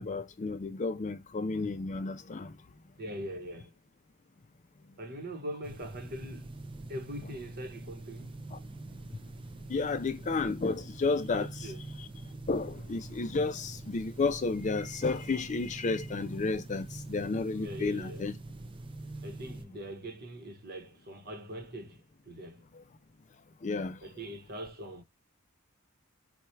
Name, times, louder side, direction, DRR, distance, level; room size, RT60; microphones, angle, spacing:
voice 1, 0.0-2.5 8.5-8.6 9.7-11.5 12.0-12.1 12.5-18.3 23.6-24.0, left 3 dB, 35° left, 0.4 m, -32 dB
voice 2, 3.0-3.7 5.0-6.5 6.9-8.4 11.3-11.8 17.6-18.3 19.2-22.6 24.0-25.0, equal, 50° right, 1.0 m, -42 dB
sound 1, 5.6-19.6, right 2 dB, 25° right, 0.4 m, -44 dB
4.3 x 2.3 x 4.4 m
head